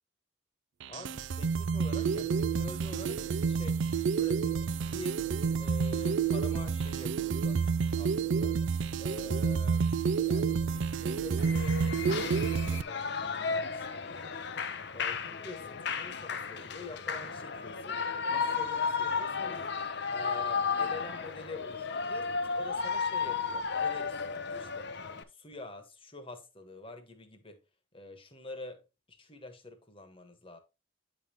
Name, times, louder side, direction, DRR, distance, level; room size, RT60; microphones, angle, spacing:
sound 1, 0.8-12.8, right 6 dB, 70° right, 0.4 m, -29 dB
voice 1, 0.9-3.8 4.2-5.2 5.6-7.7 8.0-8.6 9.0-9.9 10.2-14.4 14.9-18.0 18.3-19.6 20.1-24.9 25.3-27.6 27.9-30.6, left 2 dB, 30° left, 1.3 m, -47 dB
Shout / Cheering, 11.4-25.2, left 5 dB, 60° left, 0.7 m, -34 dB
9.5 x 5.4 x 2.9 m
head